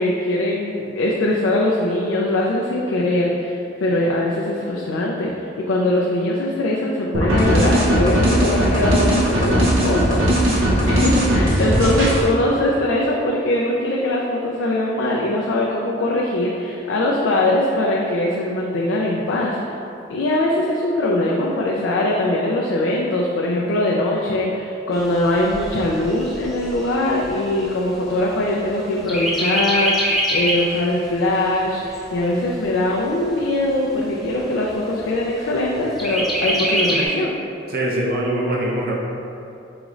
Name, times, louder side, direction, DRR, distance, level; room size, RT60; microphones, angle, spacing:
voice 1, 0.0-5.3 5.7-19.6 20.1-37.4, left 1 dB, 70° left, -3 dB, 0.4 m, -21 dB
sound 1, 7.1-12.2, right 1 dB, 90° right, 0.8 m, -18 dB
voice 2, 11.6-12.2 35.7-35.8 37.7-38.9, right 1 dB, 50° right, -3 dB, 0.6 m, -24 dB
Chirp tweet, 24.9-28.7 29.1-30.7 31.2-31.3 31.6-32.6 33.2-33.3 33.7-33.8 34.2-34.7 36.0-37.1, equal, ahead, 0.8 m, -24 dB
4.8 x 3.0 x 2.5 m, 2.7 s
head